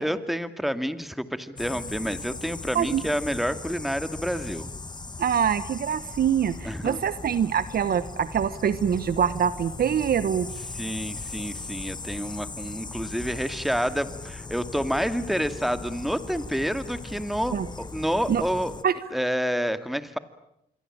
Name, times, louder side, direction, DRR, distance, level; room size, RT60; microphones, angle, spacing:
voice 1, 0.0-4.7 6.6-7.0 10.7-18.7 19.1-20.2, equal, ahead, 11 dB, 2.2 m, -29 dB
sound 1, 1.6-18.8, left 3 dB, 25° left, 1.6 m, -38 dB
voice 2, 5.2-10.5 17.5-17.7 18.3-18.4 18.8-18.9, right 8 dB, 60° right, 14 dB, 1.1 m, -24 dB
27.5 x 23.5 x 8.8 m, 0.78 s
cardioid pair, 75°, 18 cm